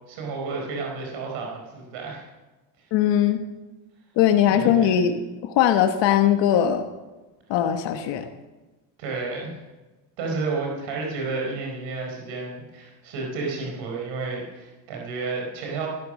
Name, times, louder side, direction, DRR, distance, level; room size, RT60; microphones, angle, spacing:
voice 1, 0.1-2.2 4.5-4.9 9.0-9.6 10.2-15.9, right 3 dB, 85° right, 0 dB, 4.6 m, -31 dB
voice 2, 2.9-3.4 4.2-6.8 7.5-8.3, left 10 dB, 75° left, 6 dB, 1.3 m, -20 dB
16.0 x 13.5 x 6.4 m, 1.1 s
cardioid pair, 120°, 43 cm